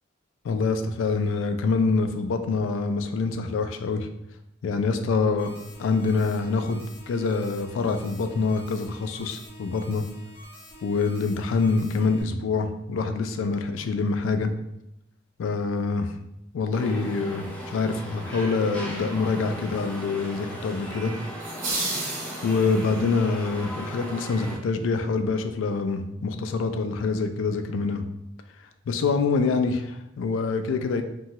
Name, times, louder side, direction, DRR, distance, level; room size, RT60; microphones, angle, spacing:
voice 1, 0.4-4.1 4.6-5.5 5.8-10.0 10.8-14.5 15.4-16.1 16.5-21.1 22.4-28.0 28.9-31.0, left 4 dB, 85° left, 8 dB, 0.3 m, -25 dB
sound 1, 5.4-12.2, left 1 dB, 55° left, 0.7 m, -47 dB
sound 2, 16.7-24.6, equal, 5° left, 0.4 m, -37 dB
sound 3, 21.4-23.0, right 2 dB, 90° right, 0.9 m, -31 dB
2.7 x 2.2 x 2.9 m, 0.84 s
head